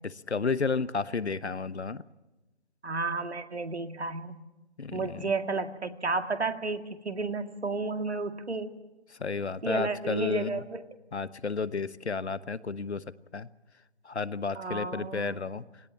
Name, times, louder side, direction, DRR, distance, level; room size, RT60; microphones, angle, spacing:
voice 1, 0.0-2.0 4.8-5.3 9.2-10.6 11.1-13.0 13.3-13.5 14.0-15.6, left 4 dB, 80° left, 17 dB, 1.0 m, -32 dB
voice 2, 2.8-4.4 4.9-8.8 9.6-10.8 14.6-15.4, right 3 dB, 75° right, 7 dB, 2.1 m, -32 dB
19.0 x 18.0 x 8.8 m, 1.0 s
figure-of-eight pair, 155°, 33 cm